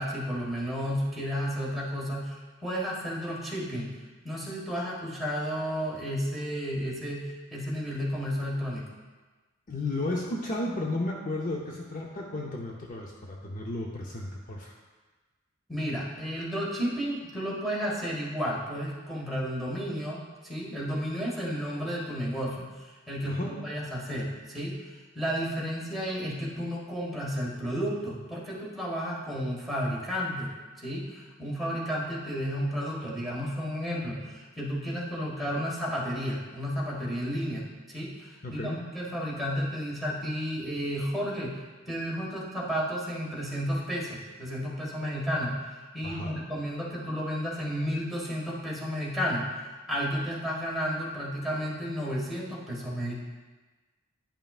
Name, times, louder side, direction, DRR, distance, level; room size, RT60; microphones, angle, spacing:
voice 1, 0.0-3.9 4.2-7.2 7.5-8.9 15.7-20.2 20.4-24.8 25.1-30.5 30.8-41.6 41.9-45.6 45.9-49.5 49.9-53.2, equal, ahead, -6 dB, 1.5 m, -32 dB
voice 2, 9.7-14.8 23.2-23.6 38.4-38.8 46.0-46.4, left 2 dB, 40° left, -1 dB, 0.6 m, -33 dB
10.5 x 5.5 x 2.4 m, 1.3 s
head